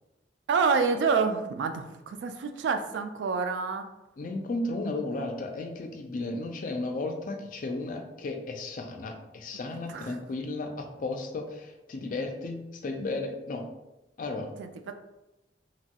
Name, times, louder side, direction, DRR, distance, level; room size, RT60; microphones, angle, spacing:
voice 1, 0.5-3.9 9.9-10.2 14.6-14.9, right 5 dB, 85° right, 7 dB, 0.3 m, -28 dB
voice 2, 4.2-13.7 14.2-14.5, left 2 dB, 50° left, 3 dB, 0.4 m, -34 dB
2.9 x 2.2 x 2.8 m, 0.97 s
head